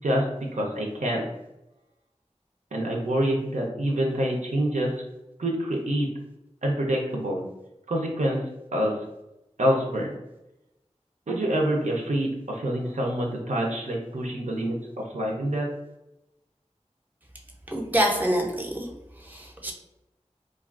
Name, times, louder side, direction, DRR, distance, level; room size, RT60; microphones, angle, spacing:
voice 1, 0.5-1.3 2.7-4.9 5.4-6.1 6.6-7.4 7.9-8.4 8.7-8.9 9.6-10.1 11.3-15.7, right 1 dB, 85° right, -1 dB, 0.5 m, -26 dB
voice 2, 17.7-18.9 19.2-19.7, equal, 15° right, 0 dB, 0.5 m, -26 dB
2.4 x 2.3 x 2.3 m, 0.93 s
wide cardioid pair, 45°, 12 cm